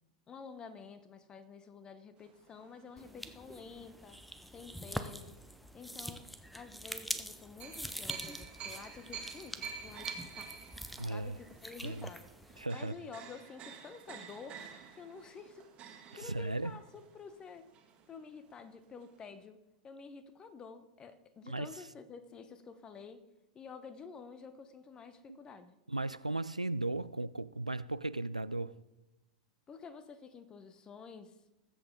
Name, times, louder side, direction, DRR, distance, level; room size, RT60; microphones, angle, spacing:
voice 1, 0.3-5.4 5.7-10.7 11.1-14.6 14.9-15.7 16.2-17.7 18.1-19.6 19.8-23.2 23.5-25.8 29.7-31.4, left 5 dB, 25° left, 1.1 m, -50 dB
sound 1, 2.2-4.6 5.2-5.4 7.6-18.4 18.6-18.7 19.0-19.2, right 6 dB, 30° right, 1.8 m, -49 dB
sound 2, 3.0-12.7, equal, ahead, 0.7 m, -45 dB
voice 2, 11.0-11.4 11.8-12.1 12.6-12.9 16.2-16.7 21.4-21.7 25.3-25.4 25.9-28.8, right 2 dB, 90° right, 0.3 m, -36 dB
20.0 x 8.0 x 3.8 m
figure-of-eight pair, 90°, 4 cm